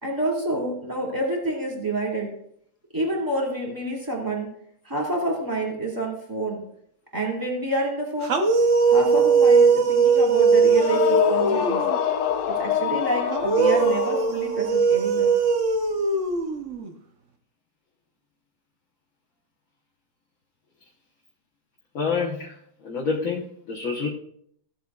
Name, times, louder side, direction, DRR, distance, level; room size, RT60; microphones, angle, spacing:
voice 1, 0.0-2.3 2.9-4.5 4.8-6.6 7.1-8.4 8.9-11.8 12.5-15.3, right 1 dB, 10° right, -3 dB, 2.2 m, -28 dB
sound 1, 8.2-12.0 13.3-16.9, right 5 dB, 65° right, 0.7 m, -20 dB
sound 2, 10.7-14.7, left 9 dB, 90° left, 1.7 m, -26 dB
voice 2, 21.9-22.5 22.8-24.1, left 5 dB, 45° left, -2 dB, 1.2 m, -27 dB
15.5 x 7.8 x 2.4 m, 0.69 s
omnidirectional pair, 2.4 m